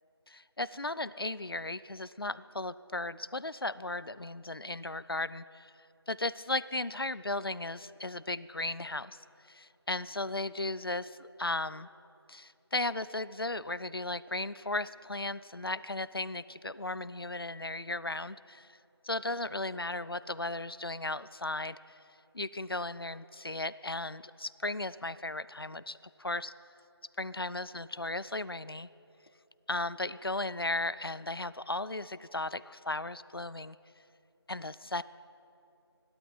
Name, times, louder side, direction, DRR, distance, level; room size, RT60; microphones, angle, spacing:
voice 1, 0.3-5.7 6.1-9.2 9.5-11.9 12.3-18.8 19.0-21.8 22.3-26.5 27.2-28.9 29.7-33.8 34.5-35.0, left 2 dB, 60° left, 17 dB, 0.4 m, -36 dB
17.5 x 12.0 x 5.6 m, 2.7 s
figure-of-eight pair, 175°, 14 cm